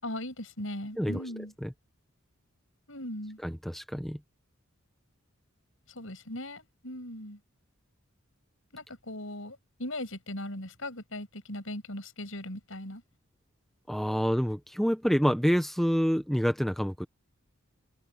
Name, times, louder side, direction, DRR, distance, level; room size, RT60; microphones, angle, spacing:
voice 1, 0.0-1.5 2.9-3.4 5.9-7.4 8.7-13.0, left 1 dB, 70° left, 6.5 m, -39 dB
voice 2, 3.4-4.2 13.9-17.1, equal, ahead, 0.9 m, -27 dB
head